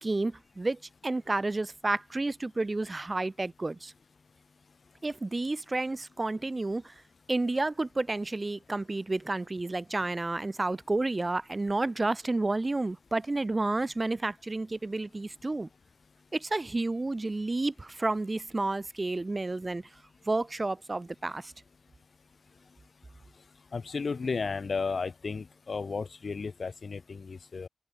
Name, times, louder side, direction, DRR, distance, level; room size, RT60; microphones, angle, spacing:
voice 1, 0.0-3.9 5.0-6.9 7.3-15.7 16.3-19.8 20.3-21.5, right 2 dB, 25° right, 0.7 m, -30 dB
voice 2, 23.7-27.7, left 4 dB, 50° left, 1.0 m, -33 dB
open air
wide cardioid pair, 175°, 0 cm